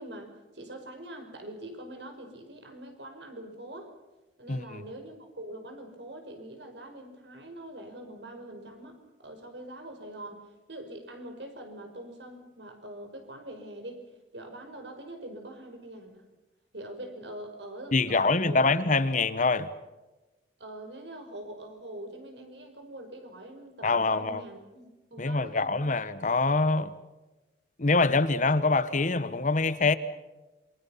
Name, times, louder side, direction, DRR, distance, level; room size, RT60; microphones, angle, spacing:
voice 1, 0.0-3.9 4.4-14.0 14.3-16.2 16.7-18.7 19.1-19.2 20.6-25.9, right 1 dB, 70° right, 5.3 m, -44 dB
voice 2, 4.5-4.8 17.9-19.7 23.8-24.4 25.2-26.9 27.8-30.0, left 3 dB, 45° left, 1.1 m, -25 dB
27.5 x 23.5 x 5.8 m
head